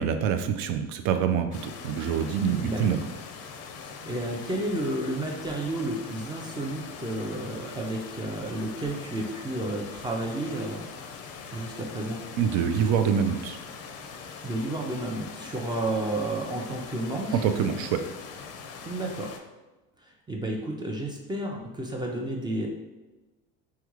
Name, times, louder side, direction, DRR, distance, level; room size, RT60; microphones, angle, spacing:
voice 1, 0.0-3.0 12.4-13.6 17.4-18.0, right 7 dB, 70° right, 7 dB, 0.4 m, -25 dB
sound 1, 1.5-19.4, left 5 dB, 50° left, 0.5 m, -42 dB
voice 2, 2.5-2.8 3.8-10.9 11.5-12.2 14.4-17.4 18.8-19.3 20.0-22.7, right 1 dB, 15° right, 0 dB, 0.5 m, -31 dB
3.5 x 2.3 x 3.0 m, 1.1 s
supercardioid pair, 100°, 31 cm